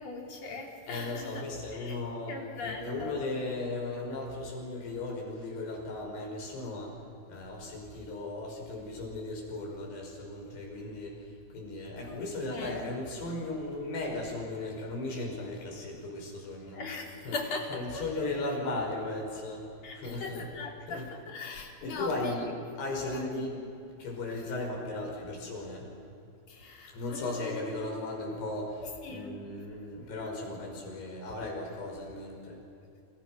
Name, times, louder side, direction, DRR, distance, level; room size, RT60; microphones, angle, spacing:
voice 1, 0.0-2.0 2.3-3.3 12.0-12.9 16.7-18.5 19.8-22.5 22.8-23.5 26.5-27.6 29.0-29.3, left 3 dB, 40° left, 1 dB, 3.7 m, -40 dB
voice 2, 0.9-7.0 7.3-16.8 17.2-17.4 17.7-19.7 19.9-20.5 20.9-21.1 21.8-22.5 22.8-23.6 24.0-25.9 26.9-32.6, left 2 dB, 60° left, 0 dB, 7.4 m, -36 dB
28.5 x 27.5 x 6.2 m, 2.6 s
omnidirectional pair, 5.4 m